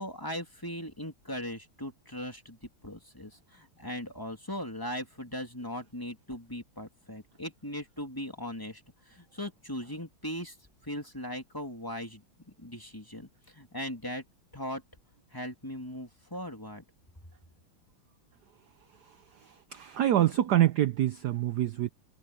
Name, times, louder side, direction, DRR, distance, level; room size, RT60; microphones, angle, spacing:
voice 1, 0.0-2.6 2.8-10.6 10.8-12.2 12.6-14.2 14.5-14.8 15.3-16.8, equal, 10° left, 2.5 m, -39 dB
voice 2, 19.4-21.9, right 12 dB, 65° right, 1.1 m, -26 dB
omnidirectional pair, 2.3 m